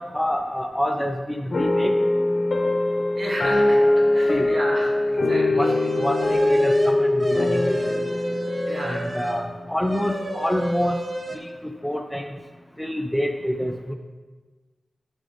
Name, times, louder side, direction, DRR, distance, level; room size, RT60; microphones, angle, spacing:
voice 1, 0.0-2.0 4.3-4.5 5.2-5.3 5.6-8.0 8.9-11.0 11.8-12.3 12.8-13.9, equal, 5° left, 5 dB, 0.5 m, -27 dB
sound 1, 1.5-10.1, left 1 dB, 55° left, 1.1 m, -22 dB
voice 2, 3.1-3.8 4.1-5.6 8.7-9.1, right 1 dB, 60° right, -5 dB, 3.1 m, -32 dB
sound 2, 5.6-9.5 9.8-11.4, right 1 dB, 30° right, 1.0 m, -31 dB
15.0 x 5.2 x 3.4 m, 1.4 s
wide cardioid pair, 90°, 0 cm